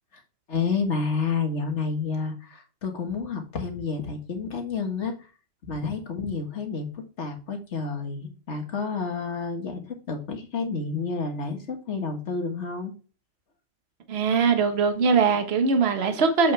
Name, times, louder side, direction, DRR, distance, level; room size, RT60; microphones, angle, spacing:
voice 1, 0.5-5.3 5.6-12.9, left 4 dB, 60° left, 1.8 m, -30 dB
voice 2, 14.1-16.5, right 5 dB, 55° right, 1.4 m, -21 dB
7.6 x 5.7 x 3.2 m
omnidirectional pair, 1.4 m